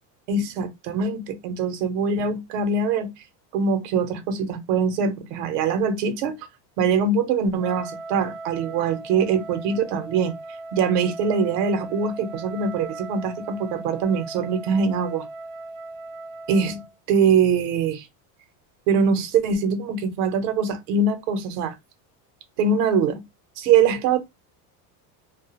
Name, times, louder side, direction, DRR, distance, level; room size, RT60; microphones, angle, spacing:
voice 1, 0.3-3.1 3.5-6.3 6.8-10.3 10.7-15.3 16.5-18.0 18.9-21.7 22.6-23.2 23.6-24.2, right 5 dB, 90° right, 0.8 m, -23 dB
Wind instrument woodwind instrument, 7.6-16.9, right 2 dB, 55° right, 0.5 m, -38 dB
2.3 x 2.0 x 2.7 m
cardioid pair, 145°, 46 cm